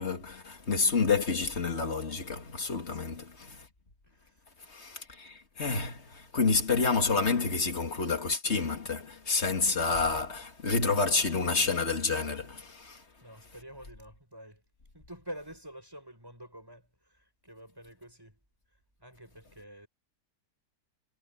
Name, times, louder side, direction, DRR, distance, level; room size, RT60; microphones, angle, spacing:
voice 1, 0.0-3.7 4.7-13.0, left 4 dB, 40° left, 2.3 m, -29 dB
voice 2, 2.7-3.1 13.2-14.6 14.9-16.8 17.1-18.4 19.0-19.9, right 1 dB, 15° right, 7.8 m, -47 dB
omnidirectional pair, 1.8 m